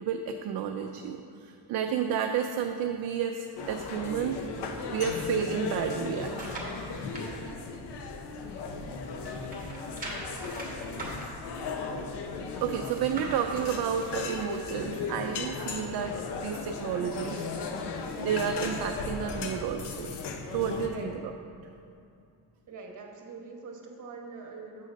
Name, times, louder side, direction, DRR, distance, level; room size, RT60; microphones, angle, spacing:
voice 1, 0.0-4.4 4.9-6.5 12.6-17.5 18.2-20.1 20.5-21.3, right 7 dB, 65° right, 5 dB, 0.5 m, -31 dB
sound 1, 3.6-20.9, left 4 dB, 80° left, 0.7 m, -36 dB
sound 2, 6.0-7.3 7.8-8.9 9.1-14.7 15.2-15.3, right 1 dB, 20° right, 1.4 m, -43 dB
voice 2, 22.7-24.9, right 4 dB, 50° right, 1 dB, 1.1 m, -43 dB
7.3 x 3.8 x 6.4 m, 2.5 s
cardioid pair, 120°, 40 cm